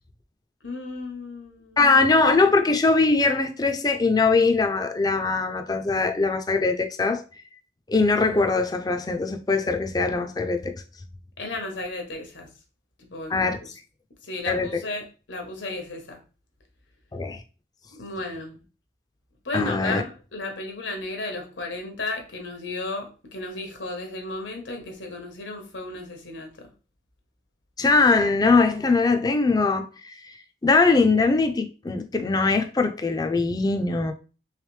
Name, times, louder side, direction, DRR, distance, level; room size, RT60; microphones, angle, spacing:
voice 1, 0.6-1.8 11.4-12.5 13.0-13.7 14.2-16.2 17.9-18.6 19.4-26.7, left 2 dB, 85° left, 1.1 m, -34 dB
voice 2, 1.8-7.2 7.9-10.8 13.3-13.6 14.5-14.8 17.1-17.4 19.5-20.0 27.8-30.1 30.6-34.1, left 3 dB, 20° left, 0.3 m, -21 dB
3.4 x 3.2 x 3.1 m
head